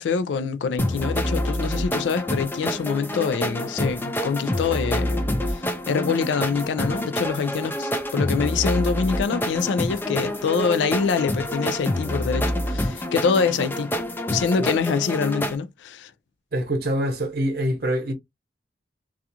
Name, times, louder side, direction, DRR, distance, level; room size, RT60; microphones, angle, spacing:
voice 1, 0.0-13.9 14.3-16.1, left 5 dB, 90° left, 0.4 m, -25 dB
sound 1, 0.8-15.6, left 1 dB, 10° left, 0.3 m, -27 dB
voice 2, 16.5-18.1, right 1 dB, 60° right, 0.8 m, -25 dB
2.4 x 2.3 x 2.7 m
head